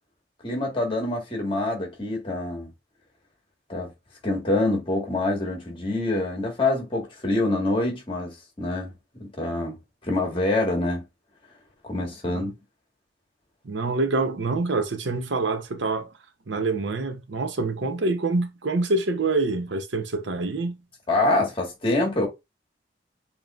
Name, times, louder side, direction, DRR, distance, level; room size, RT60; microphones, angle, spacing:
voice 1, 0.4-2.7 3.7-3.9 4.2-9.8 10.0-11.0 11.8-12.5 21.1-22.3, left 2 dB, 30° left, 1.6 m, -26 dB
voice 2, 13.6-16.1 16.5-20.8, right 3 dB, 90° right, 0.8 m, -26 dB
7.0 x 3.0 x 2.4 m
head